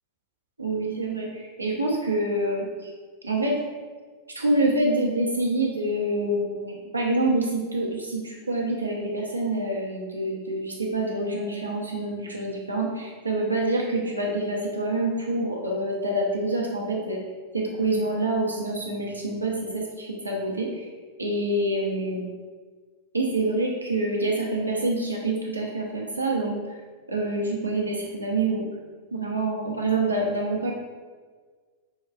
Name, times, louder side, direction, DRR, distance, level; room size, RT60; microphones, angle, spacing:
voice 1, 0.6-2.9 3.2-3.6 4.3-17.2 17.5-20.9 21.2-22.3 23.1-26.8 27.1-28.6 29.1-30.7, right 2 dB, 80° right, -1 dB, 0.7 m, -26 dB
5.5 x 3.1 x 2.3 m, 1.5 s
figure-of-eight pair, 90°, 0 cm